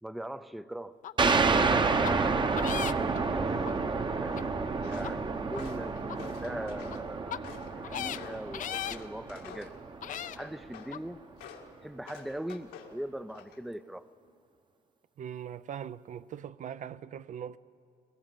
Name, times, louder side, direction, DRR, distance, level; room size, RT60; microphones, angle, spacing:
voice 1, 0.0-0.9 1.7-2.5 2.9-3.5 4.2-4.4 4.8-7.5 7.8-9.7 10.4-11.2 11.8-14.1, right 1 dB, ahead, 0.5 m, -40 dB
sound 1, 1.0-1.1 1.5-1.6 2.0-2.1 2.6-3.2 3.7-3.8 4.4-4.5 5.0-5.1 5.6-5.7 6.1-6.2 6.8-7.0 7.3-7.4 7.8-8.2 8.5-9.0 9.6-9.7 10.0-10.4 10.9-11.0, left 10 dB, 50° left, 0.6 m, -36 dB
sound 2, 1.2-10.4, right 4 dB, 25° right, 0.9 m, -30 dB
Walk footsteps, 4.8-5.2 5.5-7.0 7.4-9.8 10.1-11.0 11.4-11.7 12.1-12.9 13.3-13.7, left 8 dB, 85° left, 2.1 m, -49 dB
voice 2, 15.2-17.6, right 9 dB, 50° right, 0.5 m, -41 dB
21.5 x 20.0 x 7.6 m
cardioid pair, 110°, 17 cm